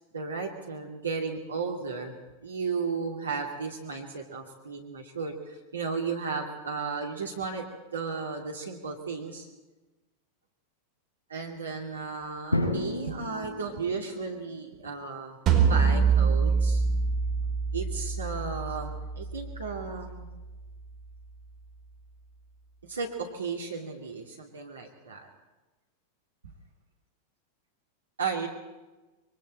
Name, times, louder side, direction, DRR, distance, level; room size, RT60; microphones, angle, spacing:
voice 1, 0.1-2.1 2.4-7.7 7.9-9.5 11.3-15.4 15.6-16.8 17.7-20.3 22.9-25.3 28.2-28.5, right 5 dB, 75° right, 0 dB, 2.5 m, -34 dB
Drum, 12.5-14.5, left 1 dB, 80° left, 2.4 m, -31 dB
sound 1, 15.5-20.5, right 5 dB, 30° right, 4.8 m, -26 dB
26.5 x 23.0 x 4.3 m, 1.1 s
figure-of-eight pair, 90°, 0 cm